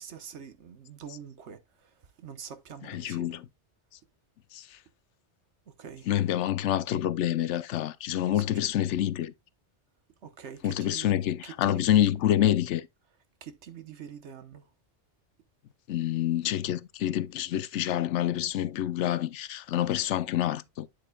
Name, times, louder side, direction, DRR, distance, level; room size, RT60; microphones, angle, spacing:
voice 1, 0.0-3.4 5.7-6.1 8.3-8.4 10.2-11.1 11.4-12.4 13.4-14.7, right 8 dB, 75° right, 1.3 m, -45 dB
voice 2, 2.9-3.4 4.5-4.8 6.1-9.3 10.6-12.9 15.9-20.9, left 12 dB, 85° left, 0.9 m, -27 dB
8.3 x 7.6 x 2.3 m
omnidirectional pair, 1.2 m